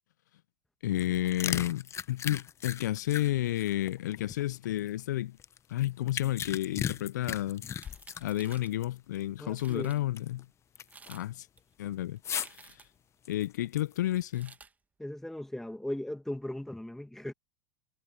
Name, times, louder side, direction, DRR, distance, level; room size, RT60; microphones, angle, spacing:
voice 1, 0.8-5.4 5.7-7.6 8.2-10.4 11.1-11.5 11.8-12.2 12.5-12.7 13.3-14.5, left 14 dB, 70° left, 0.8 m, -31 dB
sound 1, 0.9-4.9 5.4-8.9 9.2-9.3 9.8-10.4 10.8-11.1 12.2-12.7 13.2-14.2, left 9 dB, 30° left, 1.1 m, -37 dB
sound 2, 7.7-8.8 9.3-9.4 9.5-10.0 10.8-11.3 11.6-13.1 14.2-14.7, right 4 dB, 15° right, 2.1 m, -54 dB
voice 2, 9.4-9.9 15.0-17.3, left 1 dB, 5° left, 2.5 m, -38 dB
hypercardioid pair, 90°, 10 cm